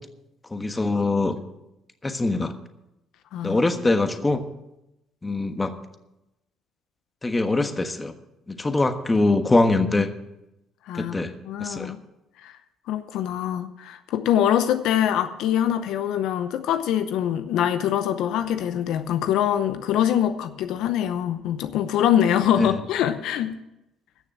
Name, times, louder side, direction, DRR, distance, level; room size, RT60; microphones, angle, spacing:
voice 1, 0.5-1.3 2.0-2.5 3.4-4.4 5.2-5.7 7.2-8.1 8.5-10.1 11.0-11.3 11.6-11.9 22.6-22.7, left 2 dB, 20° left, 7 dB, 1.3 m, -23 dB
voice 2, 11.4-12.0 12.4-12.6 12.9-23.5, left 10 dB, 75° left, 9 dB, 0.7 m, -24 dB
14.0 x 6.7 x 7.6 m, 0.90 s
supercardioid pair, 85°, 0 cm